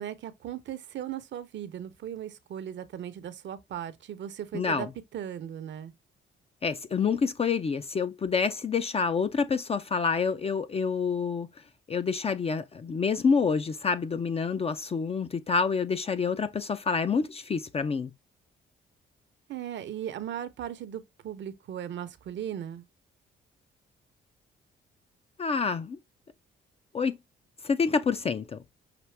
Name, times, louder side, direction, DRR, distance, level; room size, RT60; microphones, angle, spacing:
voice 1, 0.0-4.9 5.1-5.9 19.5-22.8, right 10 dB, 65° right, 0.8 m, -37 dB
voice 2, 4.5-4.9 6.6-11.5 11.9-18.1 25.4-26.0 26.9-27.2 27.6-28.6, left 5 dB, 30° left, 0.4 m, -27 dB
5.9 x 2.5 x 3.2 m
cardioid pair, 90°, 20 cm